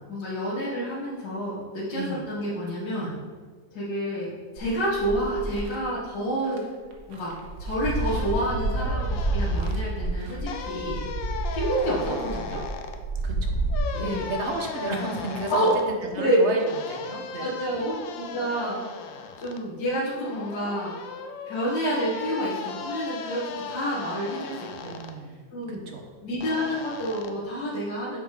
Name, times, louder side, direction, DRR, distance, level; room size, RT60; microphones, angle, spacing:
voice 1, 0.1-3.1 3.7-6.6 7.1-7.3 7.6-11.0 11.5-12.6 13.9-14.3 15.5-15.7 16.2-16.4 17.4-18.8 19.4-21.0 21.5-24.9 25.5-25.8 26.2-28.2, equal, 65° left, -11 dB, 2.5 m, -29 dB
voice 2, 1.9-2.3 13.2-16.6 16.9-17.7 24.8-26.0, right 2 dB, 45° right, 2 dB, 1.0 m, -33 dB
sound 1, 4.6-5.8 6.5-6.6 6.9-13.8, right 2 dB, 75° right, 1.7 m, -29 dB
sound 2, 8.0-9.7 10.5-13.0 13.7-15.9 16.7-19.6 20.2-25.1 26.4-27.3, left 6 dB, 85° left, 1.4 m, -37 dB
6.8 x 5.1 x 4.9 m, 1.4 s
omnidirectional pair, 2.0 m